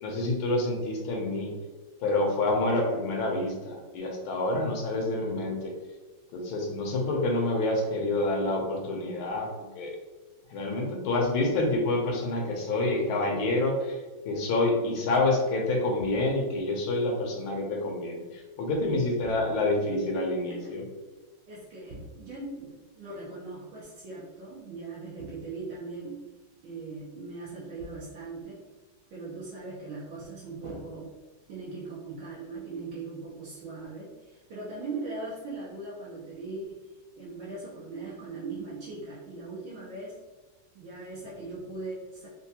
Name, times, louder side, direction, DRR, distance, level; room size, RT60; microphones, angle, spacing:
voice 1, 0.0-1.5 2.0-5.7 6.3-9.9 10.5-14.0 14.2-20.8, left 2 dB, 85° left, 1 dB, 1.6 m, -28 dB
sound 1, 16.0-16.6 19.2-19.9 21.9-22.6 25.2-26.1 27.8-28.4 30.6-31.7, equal, 55° right, 1.8 m, -48 dB
voice 2, 20.4-20.8 21.5-26.2 26.6-28.6 29.1-31.1 31.5-36.8 37.2-40.1 40.7-42.3, right 3 dB, 80° right, -7 dB, 1.6 m, -40 dB
4.4 x 2.2 x 2.8 m, 1.2 s
omnidirectional pair, 2.2 m